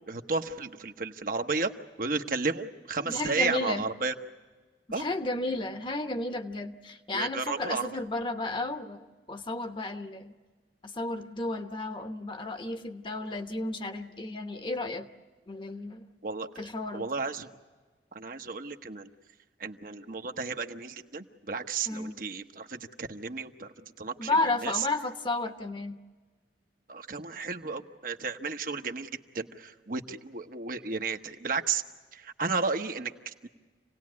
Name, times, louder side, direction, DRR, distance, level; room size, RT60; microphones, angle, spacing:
voice 1, 0.1-1.7 2.0-4.1 4.9-5.1 7.1-7.8 16.2-16.6 16.9-17.5 18.1-19.1 19.6-24.3 24.6-24.7 26.9-31.8 32.1-33.5, right 4 dB, 50° right, 6 dB, 1.0 m, -33 dB
voice 2, 3.0-3.8 5.0-10.3 10.8-15.1 15.5-16.0 16.6-17.1 21.9-22.2 24.2-26.0, left 2 dB, 25° left, 7 dB, 1.1 m, -33 dB
27.5 x 18.5 x 9.5 m, 1.4 s
head